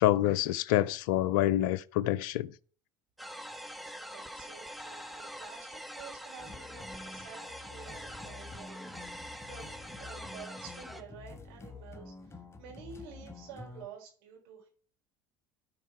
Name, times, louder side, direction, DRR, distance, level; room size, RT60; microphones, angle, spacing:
voice 1, 0.0-2.5, left 14 dB, 70° left, 0.4 m, -27 dB
sound 1, 3.2-11.0, equal, ahead, 1.2 m, -44 dB
voice 2, 4.0-8.8 9.0-14.7, right 6 dB, 70° right, 3.8 m, -50 dB
sound 2, 6.4-13.9, left 3 dB, 25° left, 1.2 m, -49 dB
13.0 x 4.8 x 4.6 m
hypercardioid pair, 70°, 12 cm